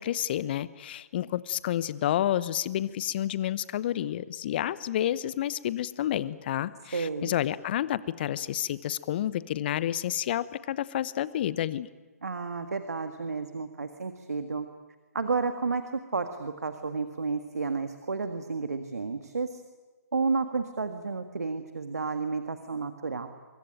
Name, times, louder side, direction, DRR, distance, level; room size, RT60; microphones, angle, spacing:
voice 1, 0.0-11.9, left 12 dB, 40° left, 17 dB, 0.9 m, -30 dB
voice 2, 6.9-7.3 12.2-14.7 15.1-19.6 20.1-23.3, right 4 dB, 70° right, 8 dB, 1.8 m, -31 dB
24.5 x 23.0 x 9.1 m, 1.3 s
figure-of-eight pair, 135°, 9 cm